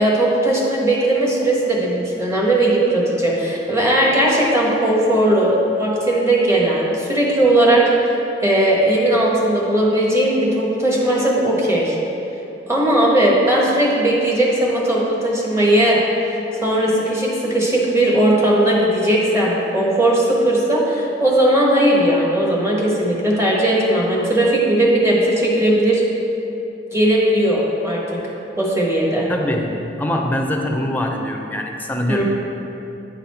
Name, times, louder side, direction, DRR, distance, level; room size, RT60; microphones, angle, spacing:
voice 1, 0.0-7.8 8.4-12.0 12.7-16.0 16.6-26.0 26.9-28.2 28.6-29.3 32.1-32.2, right 1 dB, 15° right, -4 dB, 1.1 m, -17 dB
voice 2, 29.3-29.7 30.0-32.2, left 1 dB, 10° left, 2 dB, 0.5 m, -23 dB
9.3 x 4.1 x 4.2 m, 2.9 s
head